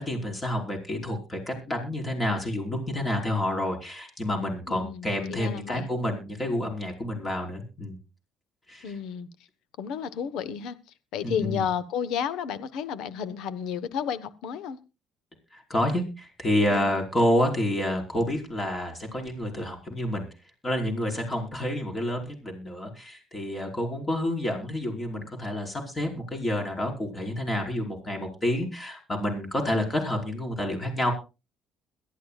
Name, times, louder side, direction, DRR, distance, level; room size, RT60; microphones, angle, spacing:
voice 1, 0.0-8.0 8.7-8.9 11.2-11.7 15.5-20.3 20.6-31.1, left 1 dB, 20° left, 2 dB, 4.8 m, -29 dB
voice 2, 4.7-5.9 8.8-9.3 9.8-10.8 11.1-14.8 16.7-17.0, left 8 dB, 75° left, 15 dB, 1.1 m, -32 dB
22.0 x 12.5 x 2.4 m, 0.30 s
cardioid pair, 115°, 0 cm